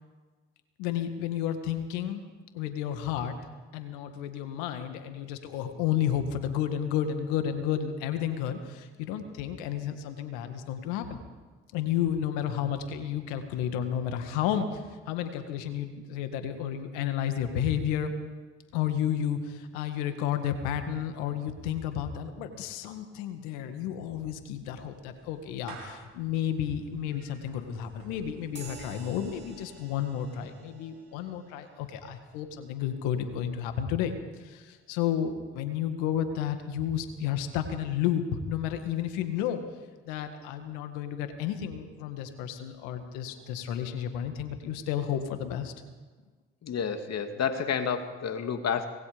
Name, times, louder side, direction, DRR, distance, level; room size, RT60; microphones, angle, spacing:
voice 1, 0.8-2.2 2.5-3.4 3.7-11.2 11.7-18.1 18.7-34.1 34.4-39.6 40.0-45.7, left 9 dB, 85° left, 8 dB, 1.9 m, -31 dB
Clapping / Meow, 23.9-30.2, right 4 dB, 90° right, 4.1 m, -53 dB
sound 1, 28.5-36.4, right 4 dB, 40° right, 7.3 m, -54 dB
voice 2, 46.6-48.9, left 7 dB, 60° left, 6 dB, 2.5 m, -30 dB
25.5 x 19.5 x 5.2 m, 1.4 s
hypercardioid pair, 45°, 29 cm